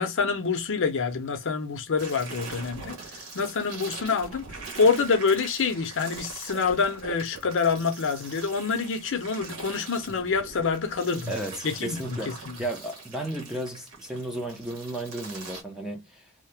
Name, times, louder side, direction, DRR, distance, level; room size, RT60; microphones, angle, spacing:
voice 1, 0.0-11.3 11.6-12.2 12.5-12.6, left 5 dB, 60° left, 0.6 m, -26 dB
sound 1, 2.0-15.6, right 4 dB, 80° right, 1.1 m, -42 dB
voice 2, 11.3-16.2, right 1 dB, 5° right, 0.5 m, -34 dB
2.8 x 2.0 x 3.2 m
head